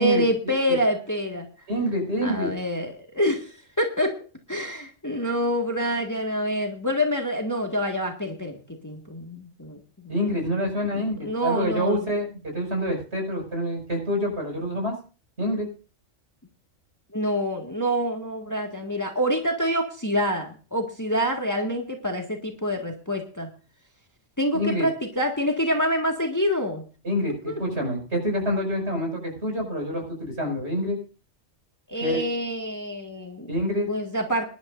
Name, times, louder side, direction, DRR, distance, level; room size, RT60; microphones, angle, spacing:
voice 1, 0.0-1.5 2.2-4.1 4.5-10.4 10.9-12.1 17.1-23.5 24.4-26.8 27.5-27.6 31.9-33.5 33.9-34.5, equal, 15° left, 3 dB, 1.9 m, -26 dB
voice 2, 1.7-2.5 10.1-14.9 15.4-15.7 24.5-24.9 27.0-31.0 32.0-32.2 33.5-33.9, equal, 55° right, 1 dB, 6.3 m, -27 dB
23.0 x 11.5 x 2.6 m, 0.37 s
omnidirectional pair, 1.3 m